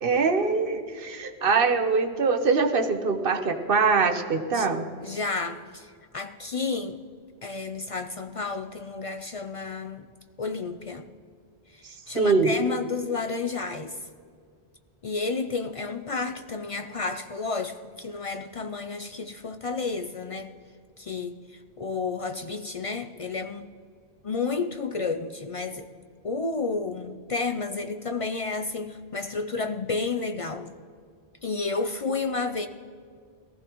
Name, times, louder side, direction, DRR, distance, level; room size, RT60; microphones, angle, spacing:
voice 1, 0.0-4.8 12.1-12.5, right 4 dB, 60° right, 7 dB, 1.1 m, -23 dB
voice 2, 5.0-7.0 7.4-10.1 10.4-11.1 11.7-14.0 15.0-20.5 21.0-23.7 24.2-25.9 26.2-30.7 31.4-32.7, left 4 dB, 50° left, 8 dB, 0.4 m, -31 dB
19.0 x 14.5 x 3.0 m, 2.1 s
omnidirectional pair, 1.1 m